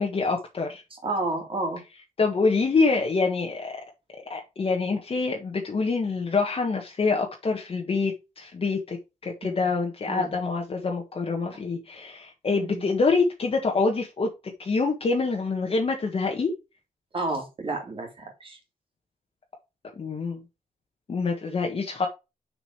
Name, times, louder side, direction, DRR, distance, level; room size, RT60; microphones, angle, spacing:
voice 1, 0.0-0.8 2.2-3.8 4.3-9.0 9.2-14.3 14.6-16.5 20.0-20.4 21.1-22.1, left 4 dB, 40° left, 1.5 m, -26 dB
voice 2, 0.9-1.8 9.4-9.7 10.1-10.3 12.5-12.9 17.1-18.6, right 2 dB, 40° right, 3.0 m, -31 dB
6.9 x 5.0 x 4.7 m
wide cardioid pair, 130°, 15 cm